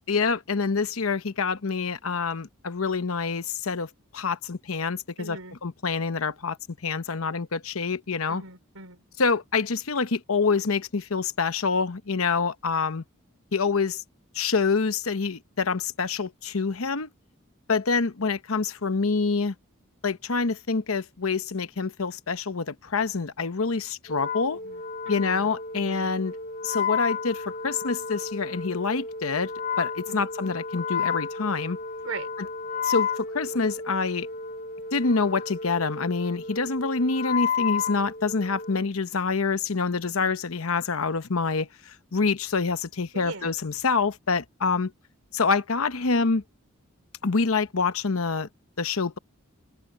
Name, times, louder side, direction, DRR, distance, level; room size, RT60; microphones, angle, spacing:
voice 1, 0.1-6.6 6.8-8.4 9.2-13.0 13.5-14.0 14.3-17.1 17.7-19.5 20.0-24.6 25.1-26.3 26.6-29.5 29.8-31.8 32.8-34.3 34.9-44.9 45.3-46.4 47.2-48.5 48.8-49.2, left 4 dB, 80° left, 1.0 m, -26 dB
voice 2, 5.2-5.6 8.3-9.0 24.6-26.1 30.1-30.3 32.0-32.3 40.0-40.3 43.1-43.5, right 3 dB, 85° right, 4.4 m, -41 dB
Wind instrument woodwind instrument, 24.1-38.8, left 5 dB, 40° left, 4.0 m, -32 dB
open air
head